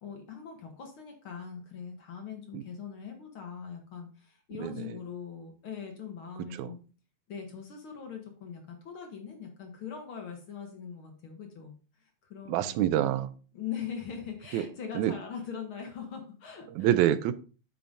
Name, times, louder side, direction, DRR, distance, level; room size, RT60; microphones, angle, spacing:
voice 1, 0.0-6.8 7.3-11.7 12.0-12.7 13.0-13.2 13.5-17.0, left 7 dB, 55° left, 3 dB, 1.8 m, -41 dB
voice 2, 12.5-13.3 14.5-14.7 15.0-15.1 16.8-17.3, right 12 dB, 90° right, 14 dB, 2.0 m, -26 dB
8.5 x 6.7 x 2.7 m, 0.36 s
omnidirectional pair, 3.3 m